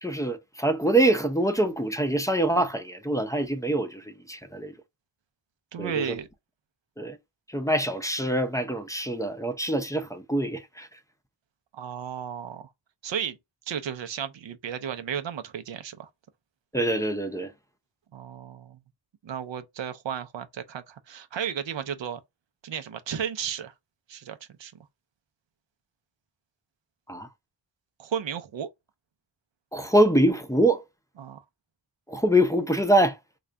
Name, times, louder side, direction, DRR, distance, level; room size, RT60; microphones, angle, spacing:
voice 1, 0.0-4.7 5.8-6.1 7.0-7.2 7.5-10.9 16.7-17.5 27.1-27.3 29.7-30.8 32.1-33.2, right 1 dB, 5° left, 0.6 m, -24 dB
voice 2, 5.7-6.3 11.7-12.7 13.0-13.4 13.7-16.1 18.1-18.8 19.2-22.2 22.6-23.7 24.1-24.7 28.0-28.7 31.2-31.4, right 8 dB, 85° right, 0.7 m, -34 dB
3.9 x 2.4 x 3.3 m
wide cardioid pair, 80°, 43 cm